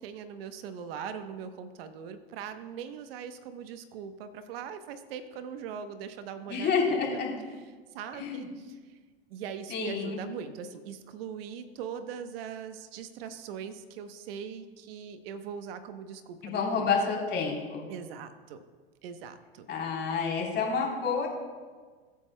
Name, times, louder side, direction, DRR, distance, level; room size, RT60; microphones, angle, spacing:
voice 1, 0.0-7.2 7.9-9.0 9.3-16.9 17.9-18.6 19.0-19.7, right 7 dB, 65° right, 9 dB, 1.0 m, -41 dB
voice 2, 6.5-7.3 8.2-8.5 9.7-10.2 16.4-17.9 19.7-21.3, left 5 dB, 35° left, -1 dB, 3.5 m, -29 dB
22.5 x 8.5 x 2.2 m, 1.5 s
hypercardioid pair, 110°, 32 cm